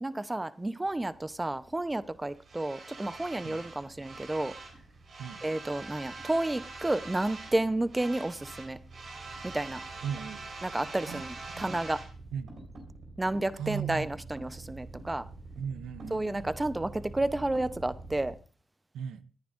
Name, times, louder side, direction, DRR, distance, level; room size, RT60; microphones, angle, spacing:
voice 1, 0.0-4.5 5.4-8.8 9.4-9.8 10.6-12.0 13.2-15.3 16.1-18.4, right 2 dB, 20° right, 0.8 m, -31 dB
sound 1, 0.8-18.3, right 3 dB, 65° right, 4.1 m, -45 dB
voice 2, 10.0-10.5 11.0-11.7 12.3-12.5 13.6-14.1 15.6-16.5 18.9-19.2, right 8 dB, 90° right, 0.7 m, -37 dB
20.0 x 10.5 x 2.6 m
cardioid pair, 60°, 0 cm